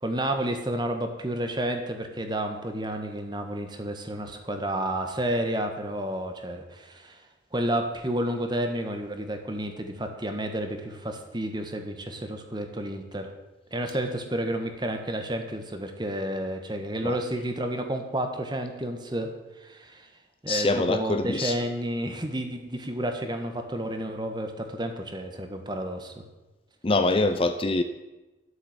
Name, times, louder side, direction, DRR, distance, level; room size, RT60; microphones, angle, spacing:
voice 1, 0.0-7.2 7.5-13.3 13.7-19.3 19.6-20.1 20.4-26.2, right 1 dB, 25° right, 5 dB, 1.5 m, -31 dB
voice 2, 20.5-21.6 26.8-27.8, left 2 dB, 30° left, 9 dB, 0.6 m, -24 dB
13.0 x 8.1 x 8.1 m, 1.1 s
head